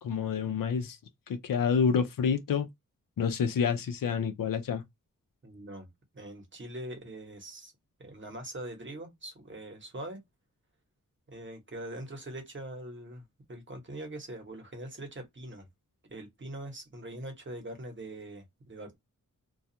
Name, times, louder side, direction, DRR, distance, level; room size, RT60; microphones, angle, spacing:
voice 1, 0.0-1.0 1.3-2.7 3.2-4.8, left 6 dB, 85° left, 0.6 m, -28 dB
voice 2, 5.4-5.9 6.1-7.7 8.0-10.2 11.3-15.7 16.1-19.0, right 1 dB, 35° right, 1.0 m, -42 dB
2.3 x 2.3 x 2.7 m
wide cardioid pair, 100°, 32 cm